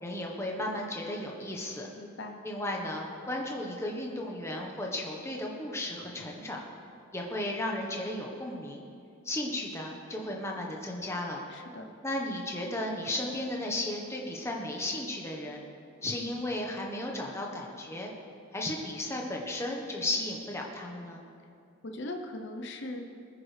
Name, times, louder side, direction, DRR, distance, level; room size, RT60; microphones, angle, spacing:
voice 1, 0.0-1.9 2.4-6.6 7.1-8.9 9.2-11.4 12.0-15.6 16.0-18.1 18.5-21.2, left 1 dB, 10° left, 0 dB, 1.2 m, -34 dB
voice 2, 2.0-2.4 11.5-11.9 21.8-23.0, left 1 dB, 55° left, 3 dB, 0.9 m, -39 dB
20.5 x 9.7 x 3.4 m, 2.5 s
head